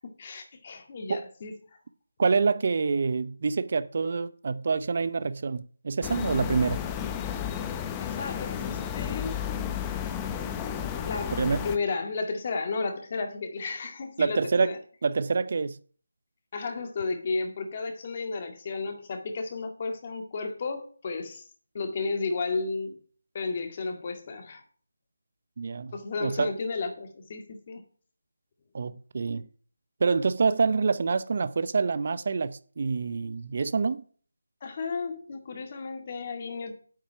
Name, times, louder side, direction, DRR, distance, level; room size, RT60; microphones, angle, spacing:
voice 1, 0.0-1.5 8.0-9.4 11.1-11.3 11.6-14.8 16.5-21.4 21.7-22.9 23.3-24.6 25.9-27.8 34.6-36.7, left 4 dB, 35° left, 2.0 m, -33 dB
voice 2, 2.2-6.8 11.4-11.6 14.2-14.8 15.0-15.8 25.6-25.9 26.2-26.5 28.7-29.5 30.0-34.0, right 4 dB, 45° right, 0.6 m, -26 dB
sound 1, 6.0-11.8, left 9 dB, 15° left, 0.7 m, -32 dB
8.8 x 8.5 x 5.8 m
figure-of-eight pair, 165°, 0 cm